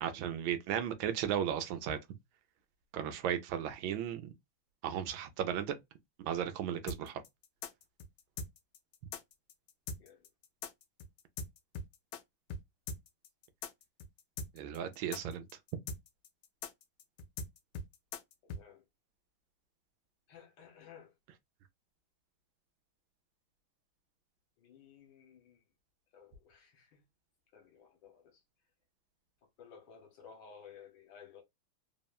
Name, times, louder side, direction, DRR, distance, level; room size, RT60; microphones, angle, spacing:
voice 1, 0.0-2.0 2.9-4.3 4.8-5.7 6.2-7.2 14.5-15.4, right 9 dB, 80° right, 1.3 m, -35 dB
sound 1, 6.9-12.2 12.5-12.6 12.9-18.6, left 4 dB, 90° left, 0.8 m, -41 dB
voice 2, 18.4-18.8 20.3-21.1 24.6-25.6 26.1-27.0 27.5-28.4 29.6-31.4, left 7 dB, 65° left, 1.5 m, -56 dB
3.5 x 2.1 x 2.2 m
omnidirectional pair, 2.2 m